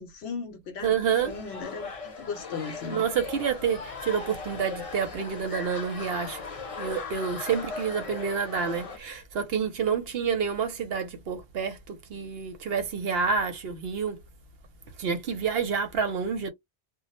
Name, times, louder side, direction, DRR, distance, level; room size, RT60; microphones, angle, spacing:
voice 1, 0.0-3.1, left 5 dB, 70° left, 0.8 m, -37 dB
voice 2, 0.8-1.3 2.9-6.4 6.8-14.2 15.0-16.5, right 6 dB, 65° right, 0.7 m, -28 dB
sound 1, 1.2-9.0, left 4 dB, 35° left, 0.7 m, -38 dB
2.1 x 2.0 x 2.8 m
omnidirectional pair, 1.2 m